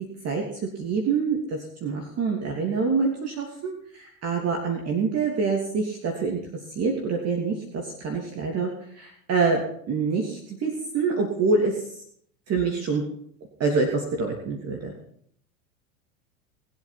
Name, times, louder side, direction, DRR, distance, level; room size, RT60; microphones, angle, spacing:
voice 1, 0.8-6.4 6.7-8.7 9.0-9.6 9.9-11.8 12.5-13.0 13.6-14.9, right 4 dB, 35° right, 1 dB, 3.0 m, -26 dB
20.0 x 8.3 x 5.9 m, 0.66 s
hypercardioid pair, 90°, 43 cm